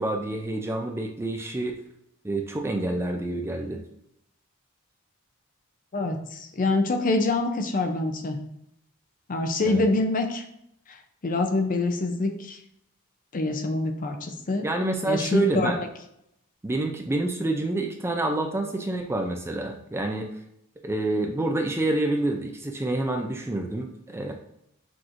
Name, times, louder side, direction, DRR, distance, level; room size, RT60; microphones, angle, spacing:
voice 1, 0.0-1.8 2.2-3.8 9.7-9.8 14.6-15.8 16.6-20.3 20.8-24.3, right 2 dB, 10° right, 3 dB, 0.4 m, -27 dB
voice 2, 5.9-8.4 9.3-10.4 10.9-11.0 11.2-12.6 13.3-14.7 15.1-15.7, left 2 dB, 40° left, 6 dB, 0.5 m, -25 dB
6.0 x 3.0 x 2.5 m, 0.77 s
head